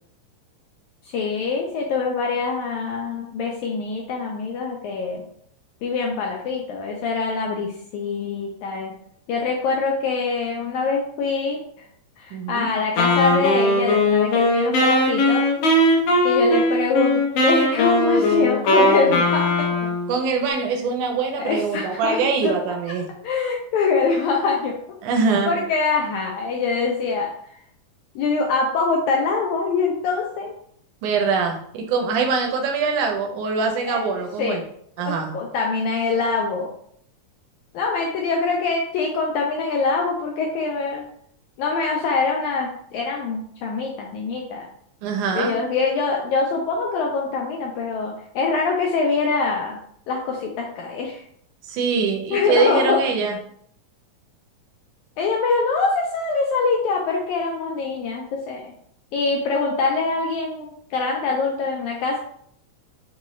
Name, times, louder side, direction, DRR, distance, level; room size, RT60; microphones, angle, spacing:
voice 1, 1.0-5.2 5.8-8.9 9.3-11.9 12.2-15.5 16.2-19.9 21.4-22.2 22.4-22.5 23.2-24.8 25.5-27.6 28.1-30.5 33.8-34.0 34.4-34.6 35.1-36.7 37.7-41.0 41.6-44.7 45.3-49.8 50.1-51.2 52.3-53.0 55.2-58.7 59.1-62.2, left 4 dB, 85° left, 0 dB, 1.6 m, -24 dB
voice 2, 12.3-12.7 20.1-23.1 25.0-25.6 31.0-34.6 35.0-35.3 45.0-45.6 51.6-53.4, right 4 dB, 75° right, 2 dB, 2.0 m, -23 dB
Wind instrument woodwind instrument, 13.0-20.1, left 1 dB, 70° left, 1.6 m, -19 dB
5.7 x 2.3 x 3.1 m, 0.67 s
omnidirectional pair, 3.9 m